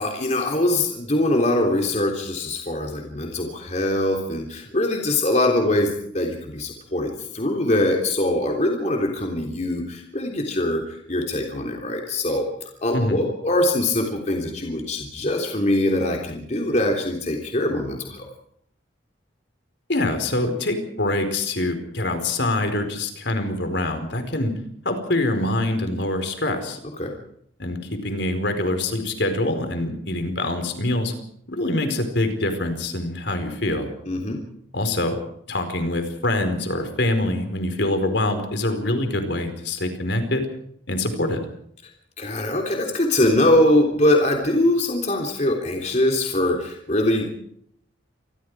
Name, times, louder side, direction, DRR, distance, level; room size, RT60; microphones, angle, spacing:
voice 1, 0.0-12.5 12.8-18.2 27.0-27.1 34.1-34.4 42.2-47.2, left 1 dB, 35° left, 2 dB, 3.4 m, -22 dB
voice 2, 19.9-24.5 24.8-26.8 27.6-31.1 31.5-33.9 34.7-35.2 35.5-40.4 40.9-41.4, left 1 dB, 65° left, 7 dB, 4.6 m, -24 dB
28.0 x 21.0 x 4.9 m, 0.69 s
head